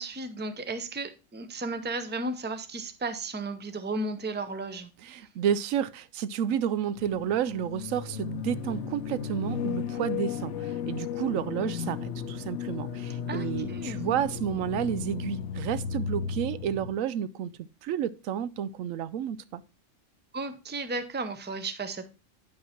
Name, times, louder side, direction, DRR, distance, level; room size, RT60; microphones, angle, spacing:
voice 1, 0.0-4.9 13.3-14.1 20.3-22.1, right 2 dB, 10° right, 0.6 m, -34 dB
voice 2, 5.0-17.5 17.8-19.6, right 9 dB, 85° right, 1.0 m, -31 dB
sound 1, 7.0-16.9, left 7 dB, 65° left, 1.0 m, -34 dB
9.4 x 5.5 x 4.4 m
omnidirectional pair, 1.3 m